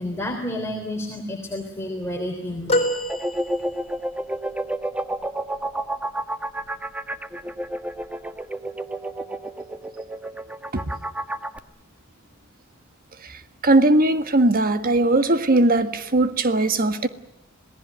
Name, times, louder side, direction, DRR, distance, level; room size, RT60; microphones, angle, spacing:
voice 1, 0.0-2.8, left 1 dB, 10° left, 3.3 m, -30 dB
sound 1, 2.7-4.1 6.5-6.7 8.0-8.1, left 1 dB, 30° left, 3.5 m, -26 dB
sound 2, 3.1-11.6, right 1 dB, 5° right, 1.2 m, -30 dB
voice 2, 13.2-17.1, right 2 dB, 45° right, 1.6 m, -19 dB
27.0 x 19.0 x 9.2 m
head